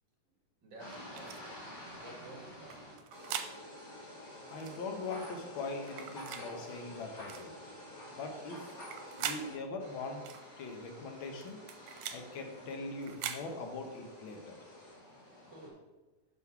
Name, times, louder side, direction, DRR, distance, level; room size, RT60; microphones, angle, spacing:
voice 1, 0.6-1.5 2.0-2.8 15.5-15.8, right 2 dB, 50° right, -1 dB, 1.6 m, -51 dB
sound 1, 0.8-9.5 9.8-15.7, left 1 dB, 30° left, 2.5 m, -49 dB
sound 2, 1.1-1.4 2.7-3.5 4.6-4.8 5.9-6.4 7.3-7.5 8.7-9.4 10.2-10.4 11.4-12.2 13.0-13.4, right 9 dB, 80° right, 2.0 m, -41 dB
voice 2, 4.5-7.6 8.2-10.2 10.6-11.6 12.1-14.6, left 3 dB, 75° left, 3 dB, 1.1 m, -41 dB
6.4 x 5.3 x 5.7 m, 1.2 s
omnidirectional pair, 3.6 m